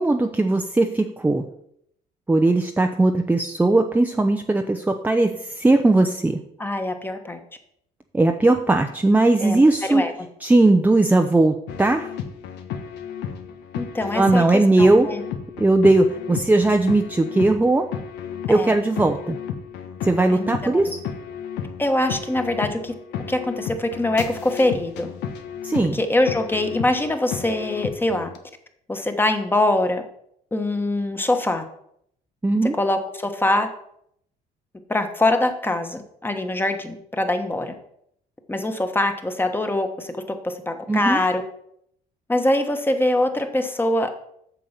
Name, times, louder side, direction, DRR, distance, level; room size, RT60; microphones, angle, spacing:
voice 1, 0.0-1.5 2.3-6.4 8.1-10.1 10.4-12.1 14.1-15.1 15.6-17.9 18.5-19.4 20.0-21.0 25.6-26.0 32.4-32.8 40.9-41.2, right 2 dB, 10° right, 4 dB, 0.6 m, -18 dB
voice 2, 6.6-7.4 9.4-9.6 9.9-10.1 13.7-15.2 18.5-18.8 20.3-20.8 21.8-22.9 23.3-25.1 25.9-28.3 28.9-30.0 30.5-31.6 32.8-33.7 34.9-37.7 38.5-41.4 42.3-44.1, left 1 dB, 10° left, 6 dB, 1.2 m, -23 dB
sound 1, 11.7-28.4, left 8 dB, 90° left, 1.1 m, -33 dB
8.6 x 6.8 x 5.8 m, 0.71 s
cardioid pair, 110°, 17 cm